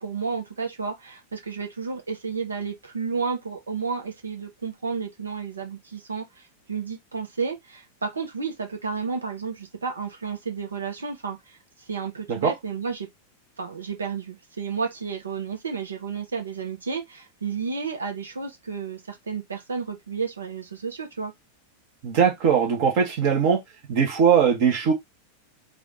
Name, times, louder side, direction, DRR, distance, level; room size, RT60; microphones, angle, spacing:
voice 1, 0.0-11.6 11.9-13.1 13.6-21.3, right 5 dB, 70° right, 1.0 m, -32 dB
voice 2, 22.0-23.6 23.9-24.9, right 7 dB, 50° right, 1.2 m, -20 dB
3.3 x 2.5 x 3.9 m
figure-of-eight pair, 90°, 0 cm